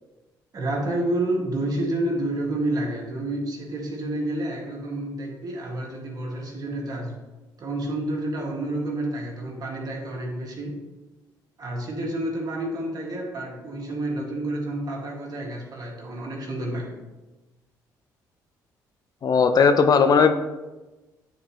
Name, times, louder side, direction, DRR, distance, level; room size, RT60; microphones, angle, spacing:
voice 1, 0.5-7.1 7.6-10.8 11.6-16.9, right 1 dB, 50° right, -1 dB, 1.9 m, -29 dB
voice 2, 19.2-20.3, left 5 dB, 50° left, 8 dB, 0.6 m, -17 dB
8.8 x 4.2 x 3.0 m, 1.1 s
supercardioid pair, 60°, 8 cm